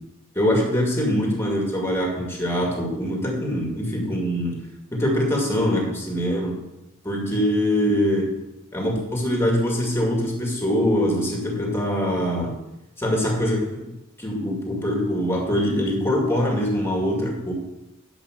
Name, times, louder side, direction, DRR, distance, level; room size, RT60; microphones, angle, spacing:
voice 1, 0.4-4.6 4.9-6.6 7.0-8.3 8.7-12.5 13.0-13.9 14.2-17.5, equal, 10° left, 0 dB, 2.1 m, -23 dB
10.5 x 5.6 x 6.6 m, 0.89 s
head